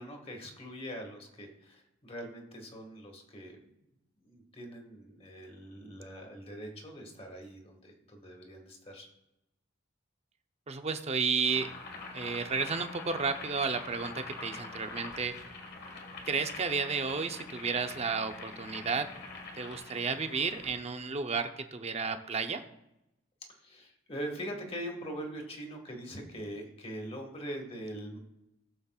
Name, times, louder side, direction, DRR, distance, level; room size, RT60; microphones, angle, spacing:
voice 1, 0.0-3.6 4.2-9.1 23.6-28.2, equal, 30° left, 2 dB, 1.8 m, -42 dB
voice 2, 10.7-11.7 12.1-15.3 16.2-19.1 19.5-22.6, right 5 dB, 30° right, 7 dB, 0.7 m, -32 dB
Boiling, 11.4-20.8, left 3 dB, 55° left, 1.6 m, -45 dB
18.5 x 7.1 x 2.4 m, 0.87 s
head